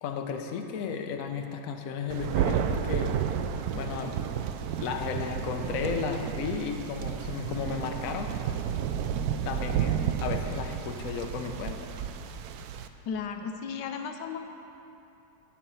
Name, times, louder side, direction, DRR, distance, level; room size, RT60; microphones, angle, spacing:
voice 1, 0.0-3.2 3.7-4.2 4.8-8.3 9.4-11.9, left 6 dB, 60° left, 4 dB, 1.0 m, -34 dB
Thunder, 2.1-12.9, right 8 dB, 70° right, 0.9 m, -31 dB
voice 2, 13.1-14.4, left 6 dB, 75° left, 6 dB, 1.3 m, -34 dB
16.5 x 5.9 x 5.5 m, 2.7 s
omnidirectional pair, 2.0 m